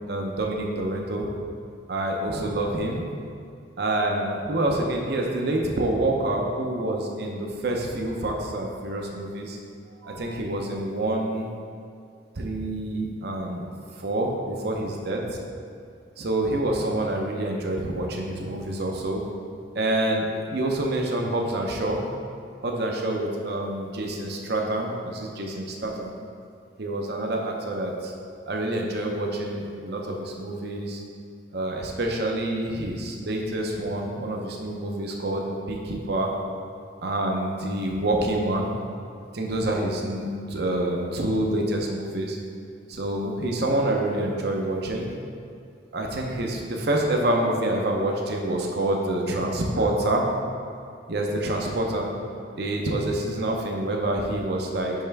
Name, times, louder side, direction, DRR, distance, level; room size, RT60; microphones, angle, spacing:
voice 1, 0.1-1.3 1.9-3.0 3.8-9.6 10.0-11.5 12.4-15.4 16.2-19.2 19.7-22.0 22.6-26.1 26.8-28.1 28.5-31.0 31.5-36.3 37.0-38.7 39.3-42.4 42.9-45.1 45.9-50.3 51.1-52.1 52.6-54.9, right 1 dB, 55° right, 0 dB, 0.7 m, -27 dB
5.6 x 5.5 x 3.4 m, 2.5 s
head